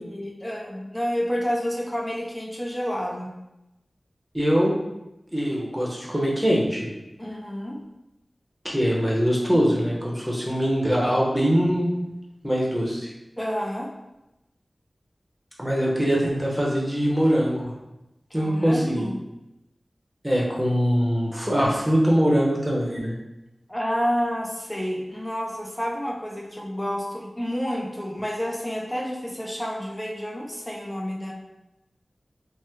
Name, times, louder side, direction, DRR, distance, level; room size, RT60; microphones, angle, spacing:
voice 1, 0.0-3.3 7.2-7.8 13.4-13.9 18.3-19.2 23.7-31.3, equal, 15° left, -1 dB, 0.4 m, -29 dB
voice 2, 4.3-4.7 5.3-6.9 8.6-11.9 12.4-13.1 15.6-17.7 18.3-19.1 20.2-23.1, equal, 5° right, -3 dB, 0.8 m, -22 dB
2.9 x 2.1 x 3.4 m, 0.93 s
wide cardioid pair, 75°, 0 cm